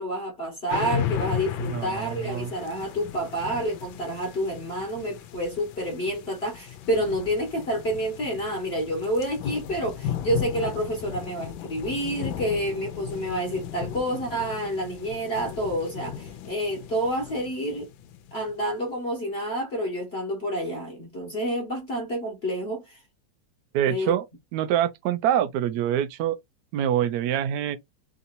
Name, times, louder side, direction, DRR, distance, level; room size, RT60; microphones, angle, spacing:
voice 1, 0.0-17.9 18.3-23.0 23.9-24.1, equal, 35° left, 1.4 m, -29 dB
sound 1, 0.7-18.5, left 9 dB, 85° left, 1.4 m, -35 dB
voice 2, 1.6-2.5 23.7-24.3 24.5-26.4 26.7-27.8, right 10 dB, 70° right, 1.0 m, -25 dB
3.7 x 2.8 x 2.5 m
omnidirectional pair, 2.1 m